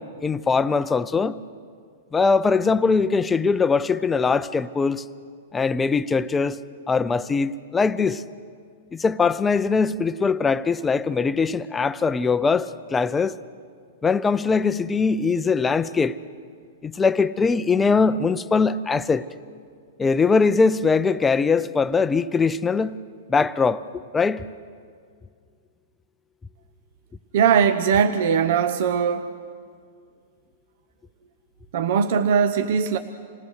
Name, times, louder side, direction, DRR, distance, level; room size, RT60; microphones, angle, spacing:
voice 1, 0.0-1.4 2.1-5.0 5.5-6.6 6.9-8.2 8.9-13.3 14.0-16.2 16.8-19.2 20.0-23.0 23.3-23.8 24.1-24.4, left 4 dB, 15° left, 0.5 m, -21 dB
voice 2, 27.3-29.3 31.7-33.0, right 7 dB, 60° right, 0.8 m, -20 dB
27.5 x 18.0 x 6.5 m
hypercardioid pair, 140°, 0 cm